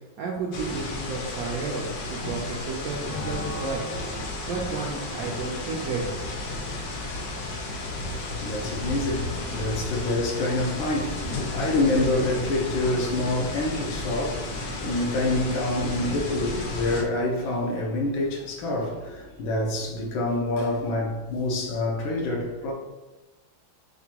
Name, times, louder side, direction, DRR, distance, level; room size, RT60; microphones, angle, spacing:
voice 1, 0.2-3.9 4.4-6.0, right 4 dB, 75° right, 0.8 m, -32 dB
sound 1, 0.5-17.0, left 2 dB, 65° left, 1.0 m, -33 dB
sound 2, 3.0-8.2, equal, 30° left, 0.3 m, -40 dB
voice 2, 7.9-22.7, left 2 dB, 85° left, 1.6 m, -27 dB
5.8 x 2.2 x 2.8 m
omnidirectional pair, 2.1 m